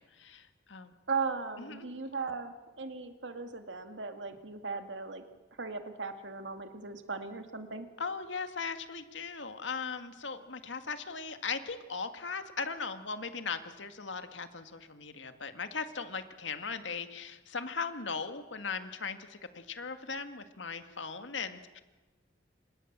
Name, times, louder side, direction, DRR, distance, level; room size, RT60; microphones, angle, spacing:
voice 1, 0.0-0.9 1.6-1.9 8.0-21.8, left 5 dB, 85° left, 8 dB, 2.0 m, -38 dB
voice 2, 1.1-5.2 5.6-7.9, right 4 dB, 80° right, 7 dB, 2.2 m, -37 dB
30.0 x 26.0 x 7.5 m, 1.2 s
head